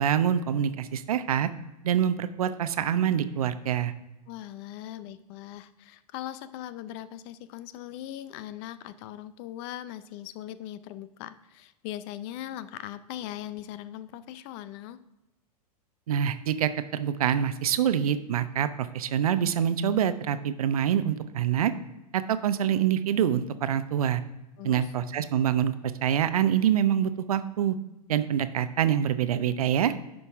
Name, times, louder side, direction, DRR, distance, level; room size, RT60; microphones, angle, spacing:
voice 1, 0.0-1.5 1.8-3.9 16.1-21.7 22.1-24.2 24.6-25.7 26.0-27.8 28.1-29.9, right 9 dB, 65° right, 12 dB, 0.6 m, -25 dB
voice 2, 4.3-15.0 24.6-24.9, left 12 dB, 40° left, 15 dB, 0.5 m, -40 dB
10.0 x 5.4 x 3.5 m, 1.0 s
figure-of-eight pair, 95°, 20 cm